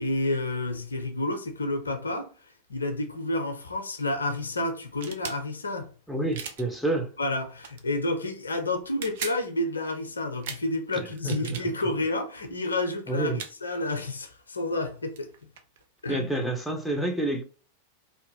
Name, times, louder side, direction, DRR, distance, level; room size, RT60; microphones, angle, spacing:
voice 1, 0.0-2.3 2.7-5.9 7.2-15.3 16.0-16.3, left 2 dB, 75° left, 0.5 m, -30 dB
sound 1, 4.9-5.4 6.3-6.6 7.6-7.8 8.8-9.4 10.4-10.6 11.1-11.7 12.6-12.8 13.4-13.5 14.9-15.0 15.2-16.5, right 6 dB, 55° right, 0.4 m, -38 dB
voice 2, 6.1-7.1 11.2-11.6 13.1-13.4 16.1-17.4, right 2 dB, ahead, 0.6 m, -28 dB
2.8 x 2.2 x 2.6 m
figure-of-eight pair, 90°, 0 cm